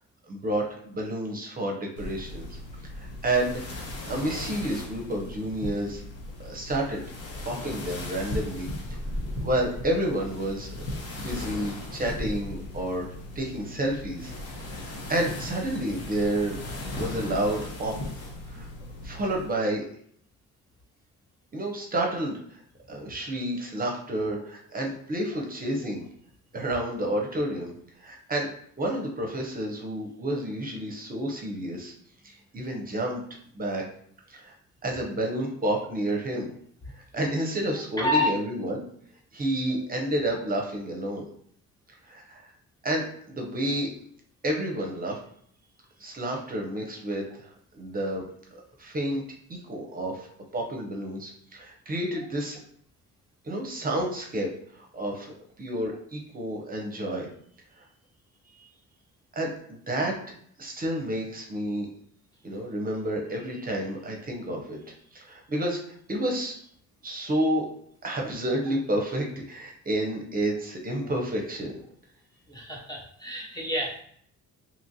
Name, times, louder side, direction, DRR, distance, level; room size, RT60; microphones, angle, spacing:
voice 1, 0.3-2.6 3.0-6.0 6.4-7.0 7.5-8.7 9.4-10.7 11.2-13.1 13.4-16.6 17.0-17.9 18.5-18.7 19.0-19.8 21.5-22.6 22.9-26.0 26.5-27.7 28.0-28.5 28.8-31.9 32.2-33.2 33.5-33.8 34.3-34.5 34.8-36.5 36.9-38.8 39.3-41.3 42.1-42.5 42.8-43.9 44.4-45.2 46.0-48.2 48.5-49.2 49.5-50.3 50.5-52.6 53.4-57.3 57.8-57.9 58.6-58.7 59.3-60.1 60.6-61.9 62.4-64.8 65.1-65.8 66.1-66.6 67.0-67.7 68.0-71.8, right 1 dB, 30° right, 1 dB, 0.6 m, -30 dB
sound 1, 2.0-19.5, left 1 dB, 55° left, 0.8 m, -37 dB
voice 2, 38.0-38.4 72.5-74.0, left 1 dB, 15° left, -2 dB, 0.5 m, -28 dB
2.9 x 2.4 x 2.7 m, 0.64 s
cardioid pair, 90°, 30 cm